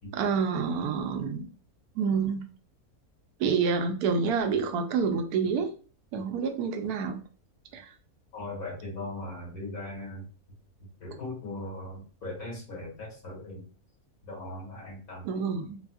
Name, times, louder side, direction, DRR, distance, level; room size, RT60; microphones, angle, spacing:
voice 1, 0.1-1.5 2.0-2.4 3.4-5.7 6.1-7.2 7.7-7.9 15.2-15.8, right 5 dB, 90° right, 5 dB, 1.1 m, -28 dB
voice 2, 8.3-10.3 10.8-13.6 14.2-15.2, left 2 dB, 70° left, -5 dB, 2.3 m, -39 dB
3.9 x 2.6 x 2.3 m, 0.39 s
omnidirectional pair, 1.6 m